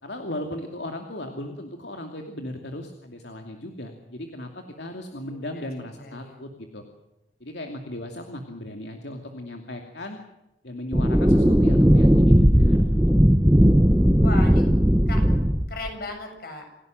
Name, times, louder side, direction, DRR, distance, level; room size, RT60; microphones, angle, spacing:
voice 1, 0.0-6.8 7.4-10.2 10.6-12.9 13.3-13.4, left 1 dB, 75° left, 4 dB, 2.6 m, -37 dB
voice 2, 5.3-6.4 14.2-14.7 15.1-15.2 15.7-16.7, left 2 dB, 55° left, 4 dB, 7.6 m, -37 dB
sound 1, 10.9-15.9, equal, 10° right, 1.3 m, -17 dB
28.5 x 17.5 x 7.8 m, 0.91 s
head